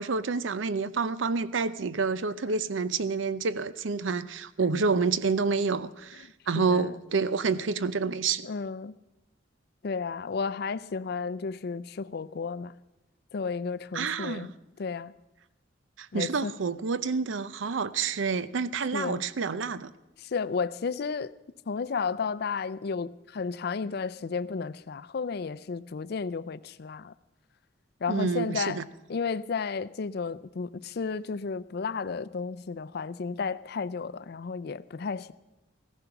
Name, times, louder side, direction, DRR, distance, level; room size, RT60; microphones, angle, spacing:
voice 1, 0.0-8.5 13.9-14.5 16.0-19.9 28.1-28.8, right 4 dB, 80° right, 0.6 m, -28 dB
voice 2, 6.2-6.9 8.4-9.0 9.8-12.8 13.3-14.5 14.8-15.1 16.1-16.5 18.9-19.2 20.2-21.3 21.7-27.1 28.0-28.8 29.1-35.3, left 5 dB, 55° left, 0.4 m, -33 dB
15.5 x 14.5 x 5.9 m
head